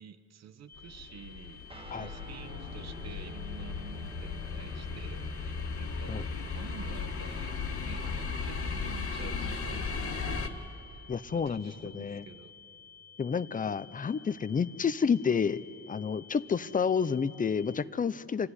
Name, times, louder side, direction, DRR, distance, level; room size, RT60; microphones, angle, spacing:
voice 1, 0.0-7.5 7.8-12.5, right 7 dB, 60° right, 11 dB, 1.1 m, -49 dB
sound 1, 0.7-17.8, left 6 dB, 10° left, 1.2 m, -54 dB
sound 2, 0.8-10.5, left 5 dB, 45° left, 1.7 m, -36 dB
Guitar, 1.7-10.5, right 2 dB, 20° right, 1.2 m, -50 dB
voice 2, 11.1-12.2 13.2-15.6 15.9-18.5, left 6 dB, 25° left, 16 dB, 0.6 m, -30 dB
28.0 x 13.0 x 9.8 m, 2.8 s
cardioid pair, 90°, 30 cm